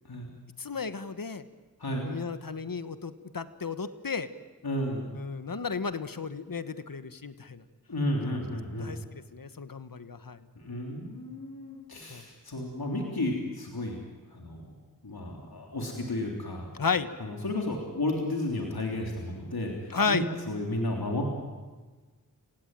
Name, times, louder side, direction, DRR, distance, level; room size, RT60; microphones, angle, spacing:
voice 1, 0.6-1.4 2.0-4.3 5.2-7.6 8.8-10.4 12.1-12.2 16.8-17.1 19.9-20.3, left 5 dB, 65° left, 12 dB, 1.4 m, -33 dB
voice 2, 4.6-5.2 7.9-9.0 10.5-14.0 14.3-14.7 15.0-16.7 17.2-21.3, left 1 dB, 85° left, 0 dB, 3.4 m, -32 dB
29.0 x 17.5 x 9.1 m, 1.3 s
wide cardioid pair, 40°, 36 cm